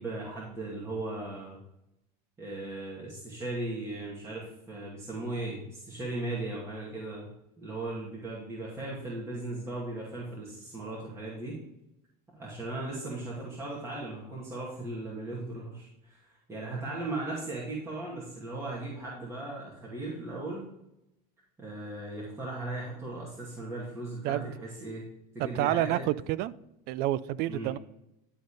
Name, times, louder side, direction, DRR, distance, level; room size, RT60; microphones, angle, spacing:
voice 1, 0.0-1.6 2.4-7.3 7.6-11.6 12.3-20.7 21.6-25.0 25.3-26.1 27.5-27.7, right 2 dB, 15° right, -6 dB, 2.3 m, -37 dB
voice 2, 25.4-26.5 26.9-27.8, right 14 dB, 50° right, 18 dB, 0.4 m, -29 dB
11.5 x 4.0 x 4.9 m, 0.86 s
supercardioid pair, 130°, 20 cm